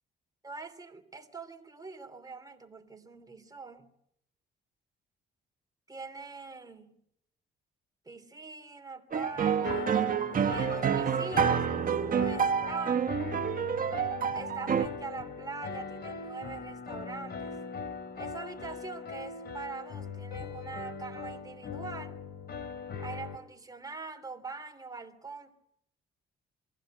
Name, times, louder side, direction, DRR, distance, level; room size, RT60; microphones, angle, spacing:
voice 1, 0.4-3.9 5.9-7.0 8.0-10.0 10.5-11.6 12.1-13.0 14.3-17.6 18.1-22.2 23.0-25.5, right 4 dB, 20° right, 5 dB, 3.0 m, -43 dB
sound 1, 9.1-14.9, right 7 dB, 45° right, 1.3 m, -28 dB
sound 2, 9.6-23.4, left 5 dB, 55° left, 2.6 m, -40 dB
23.0 x 15.5 x 8.6 m, 0.78 s
cardioid pair, 90°, 20 cm